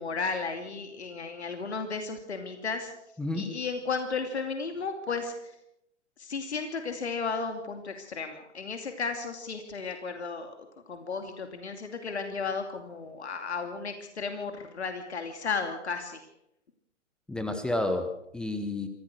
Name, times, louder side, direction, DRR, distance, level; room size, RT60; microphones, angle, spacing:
voice 1, 0.0-2.9 3.3-5.5 6.2-10.5 10.9-16.2, left 4 dB, 60° left, 6 dB, 2.6 m, -34 dB
voice 2, 3.2-3.5 17.3-18.9, left 2 dB, ahead, 7 dB, 0.9 m, -30 dB
26.0 x 16.0 x 6.5 m, 0.81 s
figure-of-eight pair, 130°, 37 cm